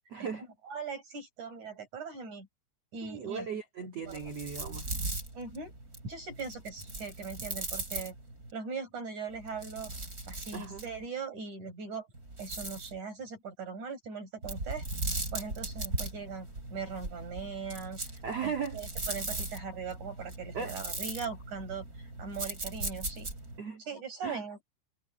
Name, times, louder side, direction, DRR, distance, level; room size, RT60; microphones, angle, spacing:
voice 1, 0.1-0.4 3.0-4.9 10.5-10.8 18.2-18.8 20.5-20.8 23.6-23.8 24.2-24.4, right 6 dB, 50° right, 2.0 m, -37 dB
voice 2, 0.7-2.5 2.9-3.5 4.1-4.3 5.3-5.7 6.0-8.1 8.5-9.9 10.3-12.1 12.4-14.8 15.3-18.0 18.4-23.3 23.9-24.6, right 5 dB, 35° right, 7.4 m, -40 dB
sound 1, 4.0-8.5 9.3-11.1 12.1-13.0 14.4-23.6, right 2 dB, 15° right, 6.0 m, -39 dB
omnidirectional pair, 6.0 m